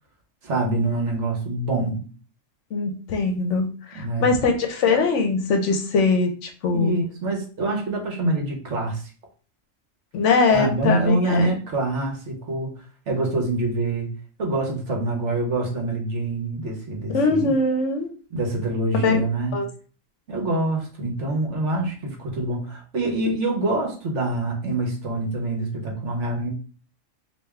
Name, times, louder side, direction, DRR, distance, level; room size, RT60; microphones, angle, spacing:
voice 1, 0.4-2.1 3.9-4.3 6.7-9.0 10.5-12.7 13.1-14.1 14.4-17.5 18.3-19.6 20.3-26.5, right 2 dB, 65° right, 1 dB, 1.3 m, -25 dB
voice 2, 2.7-6.9 10.1-11.5 17.1-18.1 19.0-19.2 19.5-19.7, left 4 dB, 70° left, 4 dB, 0.9 m, -21 dB
3.4 x 2.8 x 3.4 m, 0.39 s
omnidirectional pair, 1.3 m